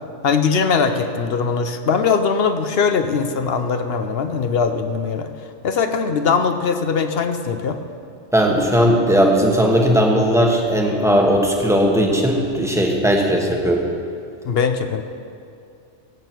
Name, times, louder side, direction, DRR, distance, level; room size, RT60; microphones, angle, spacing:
voice 1, 0.2-5.3 5.6-7.8 14.4-15.0, left 5 dB, 55° left, 8 dB, 0.8 m, -20 dB
voice 2, 8.3-13.9, equal, ahead, 0 dB, 1.2 m, -17 dB
16.5 x 8.6 x 4.5 m, 2.4 s
omnidirectional pair, 1.3 m